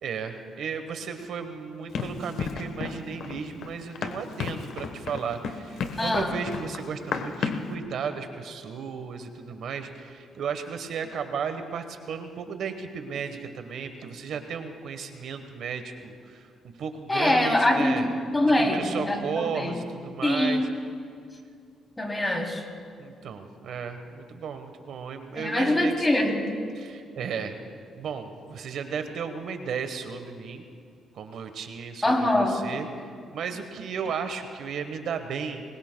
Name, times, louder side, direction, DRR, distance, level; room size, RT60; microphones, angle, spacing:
voice 1, 0.0-18.1 18.6-20.7 23.0-26.1 26.7-27.6 27.9-30.6 31.1-35.6, right 6 dB, 70° right, 8 dB, 1.1 m, -34 dB
Run, 1.9-7.7, left 5 dB, 75° left, 1.1 m, -33 dB
voice 2, 6.0-6.3 17.1-19.7 20.2-20.6 22.0-22.6 25.3-26.4 32.0-32.6, left 1 dB, 15° left, 1 dB, 3.0 m, -24 dB
25.5 x 21.5 x 2.2 m, 2.3 s
cardioid pair, 90°, 0 cm